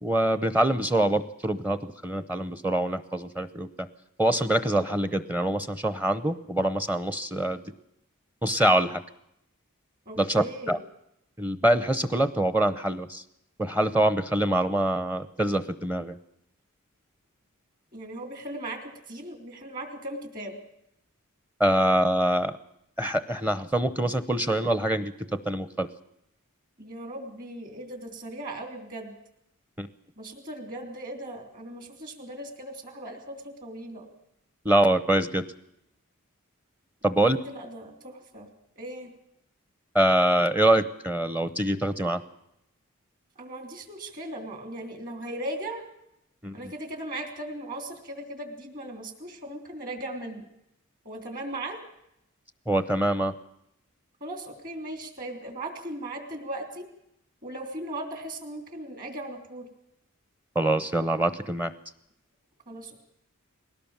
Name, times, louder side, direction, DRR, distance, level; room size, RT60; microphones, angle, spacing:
voice 1, 0.0-3.9 4.2-7.6 8.4-9.0 10.2-10.8 11.4-13.2 13.6-16.2 21.6-22.5 23.0-25.9 29.8-29.9 34.6-35.4 37.0-37.4 39.9-42.2 46.4-46.7 52.7-53.3 60.5-61.7, right 1 dB, 10° right, 12 dB, 0.8 m, -24 dB
voice 2, 10.0-10.8 17.9-20.6 26.8-29.2 30.2-34.1 37.3-38.5 38.8-39.1 43.3-45.8 46.5-50.5 51.0-51.8 54.2-56.9 57.4-59.7 62.7-63.0, right 1 dB, 40° right, 5 dB, 3.4 m, -38 dB
20.5 x 17.5 x 7.3 m, 0.79 s
head